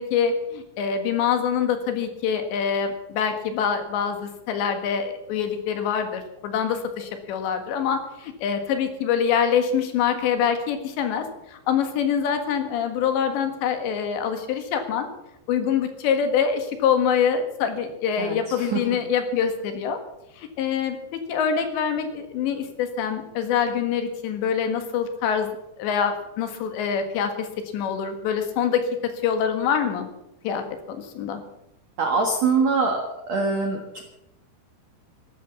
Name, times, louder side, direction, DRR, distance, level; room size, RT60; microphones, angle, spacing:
voice 1, 0.0-15.1 15.5-20.0 20.4-25.5 25.8-27.5 27.7-30.1 30.4-31.4, left 7 dB, 70° left, 7 dB, 3.7 m, -25 dB
voice 2, 18.2-18.8 32.0-33.0 33.3-34.0, right 4 dB, 60° right, 2 dB, 1.8 m, -23 dB
14.0 x 12.5 x 7.0 m, 0.85 s
omnidirectional pair, 5.5 m